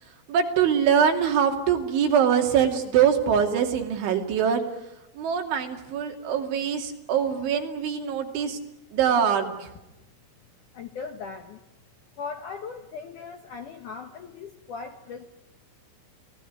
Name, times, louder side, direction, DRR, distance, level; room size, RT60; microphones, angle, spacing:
voice 1, 0.3-4.6 5.2-8.6 8.9-9.7, right 8 dB, 80° right, 3 dB, 5.1 m, -23 dB
voice 2, 10.7-11.6 12.2-15.2, left 5 dB, 70° left, 6 dB, 2.0 m, -38 dB
27.5 x 18.5 x 9.5 m, 0.95 s
omnidirectional pair, 5.3 m